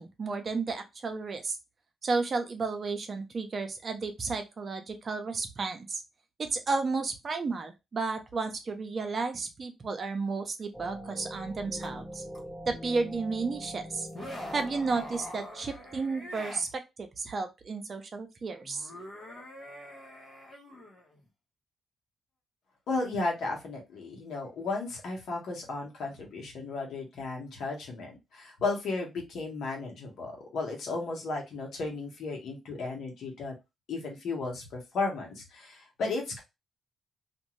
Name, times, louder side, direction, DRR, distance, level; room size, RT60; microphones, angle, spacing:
voice 1, 0.0-1.6 2.0-6.0 6.4-12.2 12.7-14.1 14.5-18.9, right 4 dB, 45° right, 6 dB, 0.7 m, -32 dB
sound 1, 10.7-16.3, equal, ahead, 0.9 m, -44 dB
sound 2, 11.8-11.9 12.3-12.4 14.1-16.7 18.6-21.2, left 1 dB, 45° left, 1.1 m, -44 dB
voice 2, 22.9-33.5 33.9-36.4, left 3 dB, 70° left, 0 dB, 1.2 m, -34 dB
2.5 x 2.5 x 3.1 m, 0.23 s
cardioid pair, 70°, 0 cm